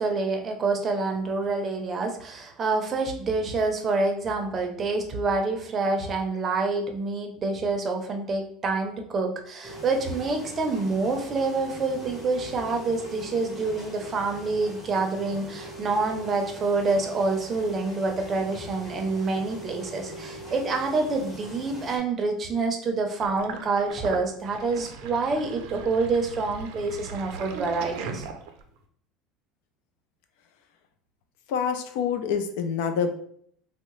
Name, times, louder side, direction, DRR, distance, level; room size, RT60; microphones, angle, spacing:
voice 1, 0.0-28.3, right 3 dB, 25° right, 3 dB, 0.6 m, -27 dB
sound 1, 9.6-22.0, equal, 10° left, 0.9 m, -41 dB
Sink (filling or washing), 23.2-28.8, right 5 dB, 75° right, 0.4 m, -38 dB
voice 2, 31.5-33.1, left 7 dB, 75° left, 8 dB, 0.4 m, -26 dB
3.5 x 2.1 x 3.0 m, 0.63 s
cardioid pair, 145°, 0 cm